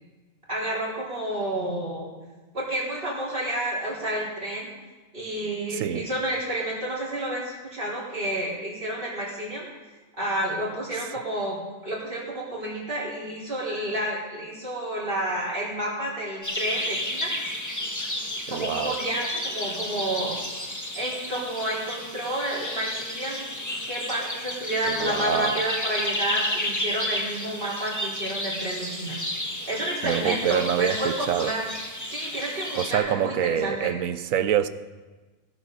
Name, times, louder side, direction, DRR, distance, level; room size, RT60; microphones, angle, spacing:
voice 1, 0.5-2.1 2.5-4.7 5.1-9.7 10.2-11.6 11.8-17.3 18.5-20.4 20.9-23.5 23.9-29.2 29.7-31.7 32.1-33.9, right 1 dB, 45° right, -6 dB, 4.5 m, -30 dB
voice 2, 5.7-6.1 18.5-19.0 24.9-25.6 30.0-31.5 32.8-34.7, right 10 dB, 90° right, 13 dB, 1.1 m, -26 dB
sound 1, 16.4-33.0, left 1 dB, 15° left, 1.5 m, -32 dB
18.5 x 13.0 x 4.0 m, 1.2 s
omnidirectional pair, 1.4 m